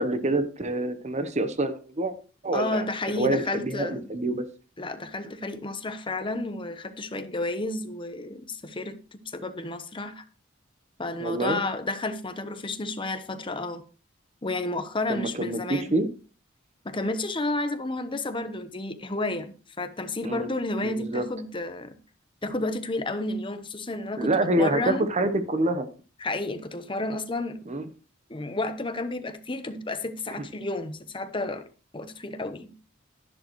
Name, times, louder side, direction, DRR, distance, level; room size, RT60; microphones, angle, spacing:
voice 1, 0.0-2.1 2.4-2.9 3.2-4.4 11.2-11.6 15.1-16.1 20.2-20.5 20.8-21.3 24.2-25.9 27.7-27.9 30.4-30.5, right 2 dB, 35° right, 1.0 m, -26 dB
voice 2, 2.5-4.0 4.8-10.2 11.0-13.8 14.4-15.9 16.8-22.0 22.4-25.1 26.2-27.6 28.3-31.6 31.9-32.7, left 2 dB, 25° left, 0.9 m, -31 dB
11.0 x 10.5 x 3.1 m
head